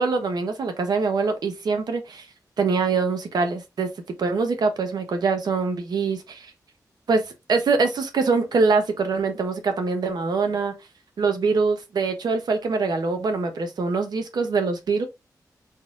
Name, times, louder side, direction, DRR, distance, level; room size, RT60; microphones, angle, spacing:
voice 1, 0.0-2.3 2.6-3.9 4.2-6.5 7.1-10.7 11.2-15.0, right 4 dB, 85° right, 1.0 m, -24 dB
4.0 x 3.9 x 2.4 m
wide cardioid pair, 165°, 7 cm